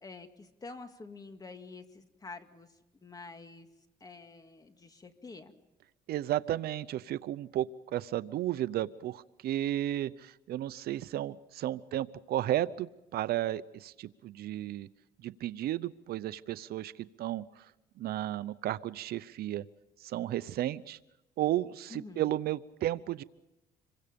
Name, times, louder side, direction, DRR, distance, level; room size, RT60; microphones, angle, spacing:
voice 1, 0.0-2.7 3.0-3.7 4.0-5.5 21.9-22.3, left 3 dB, 20° left, 7 dB, 2.2 m, -48 dB
voice 2, 6.1-14.9 15.2-16.9 17.2-17.7 18.0-19.6 20.0-21.0 21.4-23.2, right 13 dB, 65° right, 16 dB, 0.7 m, -33 dB
27.0 x 23.5 x 5.2 m, 0.95 s
cardioid pair, 110°, 17 cm